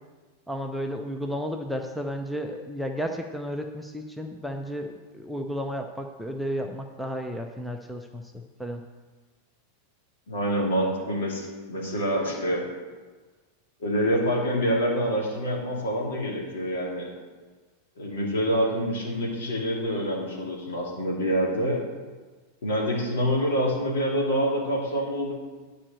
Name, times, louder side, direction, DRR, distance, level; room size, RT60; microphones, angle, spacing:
voice 1, 0.5-8.8, equal, ahead, 3 dB, 0.7 m, -33 dB
voice 2, 10.3-12.6 13.8-17.1 18.0-21.8 22.6-25.3, equal, 60° left, -2 dB, 2.8 m, -26 dB
10.0 x 5.1 x 6.9 m, 1.3 s
figure-of-eight pair, 90°, 0 cm